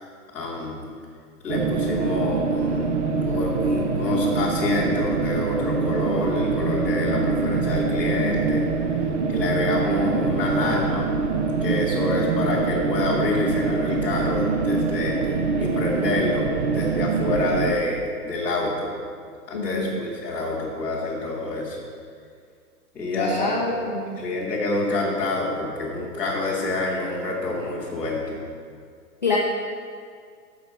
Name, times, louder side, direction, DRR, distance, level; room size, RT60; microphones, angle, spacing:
voice 1, 0.3-0.8 1.4-2.9 3.3-8.6 9.3-11.1 11.6-15.2 15.6-18.9 19.5-21.8 22.9-23.7 24.2-28.4, left 2 dB, 5° left, -12 dB, 1.1 m, -27 dB
sound 1, 1.5-17.7, right 4 dB, 50° right, 0.6 m, -24 dB
voice 2, 19.5-20.0 23.1-24.2 29.2-29.4, left 3 dB, 30° left, -2 dB, 0.5 m, -26 dB
14.5 x 5.6 x 4.6 m, 2.2 s
hypercardioid pair, 180°, 47 cm